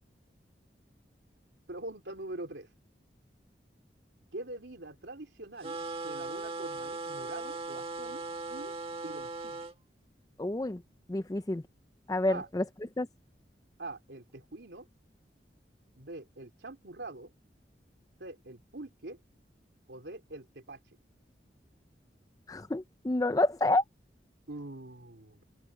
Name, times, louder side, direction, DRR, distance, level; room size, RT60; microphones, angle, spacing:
voice 1, 1.7-2.7 4.3-5.8 6.0-8.2 8.5-8.7 9.0-9.7 12.3-12.5 13.8-14.9 15.9-17.3 18.2-19.2 19.9-20.8 24.5-25.4, right 2 dB, 85° right, 3.0 m, -44 dB
sound 1, 5.6-9.7, right 3 dB, 30° right, 1.9 m, -38 dB
voice 2, 10.4-10.8 11.1-11.6 12.1-12.6 13.0-13.1 22.5-23.8, left 2 dB, 20° left, 0.4 m, -28 dB
head